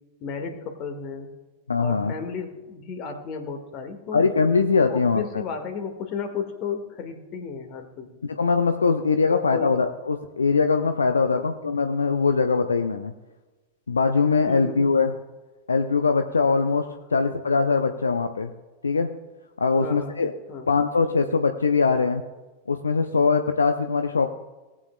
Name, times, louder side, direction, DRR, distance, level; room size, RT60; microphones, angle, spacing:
voice 1, 0.2-1.3 1.8-4.3 4.9-8.1 9.2-9.7 11.3-11.5 14.5-14.8 19.8-20.2 20.5-20.7, left 5 dB, 40° left, 5 dB, 1.6 m, -33 dB
voice 2, 1.7-2.1 4.1-5.4 8.2-13.1 13.9-15.1 15.7-18.5 18.8-19.1 19.6-20.3 20.7-22.2 22.7-24.4, left 4 dB, 75° left, 8 dB, 0.5 m, -22 dB
18.5 x 8.5 x 2.2 m, 1.2 s
figure-of-eight pair, 90°, 0 cm